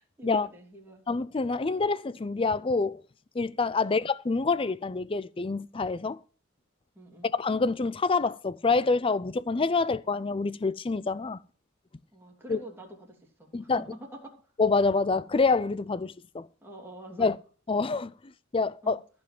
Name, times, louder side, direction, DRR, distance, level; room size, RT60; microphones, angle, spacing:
voice 1, 0.0-1.1 3.8-4.0 6.9-7.3 12.1-14.3 16.6-17.3 18.8-18.9, right 1 dB, 10° right, 2.8 m, -46 dB
voice 2, 1.1-3.0 3.3-6.2 7.3-11.4 12.5-12.6 13.5-13.8 14.6-16.5 17.2-17.4 17.7-18.1 18.5-19.0, left 4 dB, 25° left, 0.5 m, -26 dB
14.5 x 5.3 x 7.7 m
head